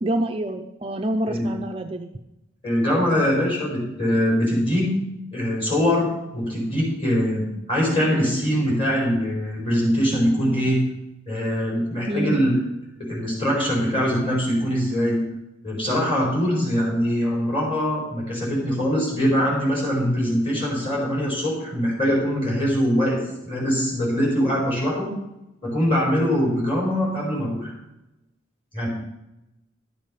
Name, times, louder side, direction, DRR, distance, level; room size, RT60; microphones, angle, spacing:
voice 1, 0.0-2.1 12.1-12.4, right 1 dB, 30° right, 5 dB, 0.5 m, -26 dB
voice 2, 2.6-4.9 5.3-6.1 6.3-10.8 11.3-12.5 13.0-15.2 15.6-25.1 25.6-27.7 28.7-28.9, equal, 30° left, -4 dB, 4.9 m, -22 dB
12.0 x 6.7 x 5.6 m, 0.93 s
head